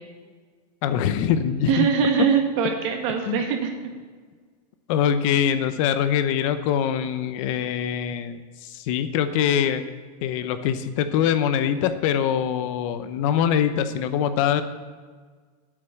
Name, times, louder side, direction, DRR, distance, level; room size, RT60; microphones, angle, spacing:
voice 1, 0.8-1.9 3.3-3.4 4.9-9.9 10.2-14.6, left 9 dB, 50° left, 10 dB, 0.8 m, -23 dB
voice 2, 1.7-3.7, right 6 dB, 50° right, 4 dB, 1.9 m, -22 dB
8.6 x 8.5 x 7.1 m, 1.5 s
supercardioid pair, 160°, 21 cm